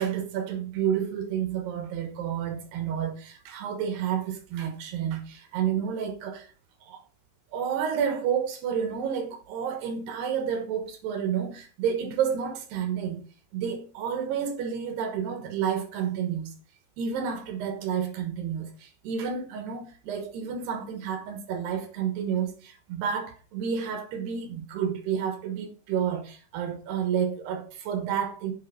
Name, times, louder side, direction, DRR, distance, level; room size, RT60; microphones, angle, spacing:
voice 1, 0.0-6.5 6.8-7.0 7.5-13.3 13.5-16.5 17.0-28.5, right 8 dB, 70° right, 2.9 m, -30 dB
9.5 x 7.8 x 5.7 m
omnidirectional pair, 5.7 m